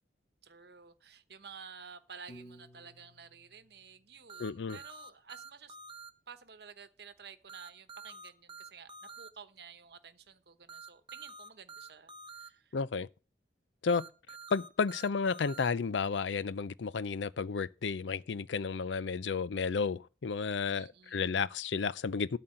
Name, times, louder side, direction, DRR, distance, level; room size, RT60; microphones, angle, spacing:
voice 1, 0.4-5.8 6.3-8.9 9.2-12.8 19.3-19.6 20.7-21.4, right 6 dB, 60° right, 1.0 m, -52 dB
Piano, 2.3-4.5, equal, 30° left, 2.3 m, -56 dB
sound 1, 4.3-6.1 7.5-9.3 10.7-12.5 13.9-15.7, right 4 dB, 25° right, 0.8 m, -48 dB
voice 2, 4.4-4.8 12.7-13.1 13.8-14.0 14.5-22.4, left 5 dB, 80° left, 0.5 m, -32 dB
12.5 x 4.2 x 7.6 m
head